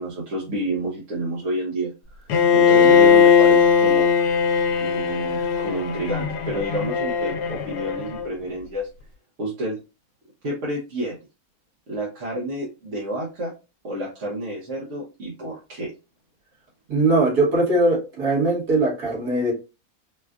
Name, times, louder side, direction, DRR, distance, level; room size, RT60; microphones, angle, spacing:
voice 1, 0.0-4.1 4.8-8.9 9.4-9.8 10.4-11.1 11.9-13.5 13.8-15.9, right 1 dB, 55° right, -4 dB, 1.1 m, -29 dB
Bowed string instrument, 2.3-8.3, left 6 dB, 85° left, 1.2 m, -18 dB
voice 2, 16.9-19.5, right 2 dB, 75° right, -4 dB, 2.1 m, -21 dB
4.3 x 2.3 x 2.4 m, 0.29 s
omnidirectional pair, 1.7 m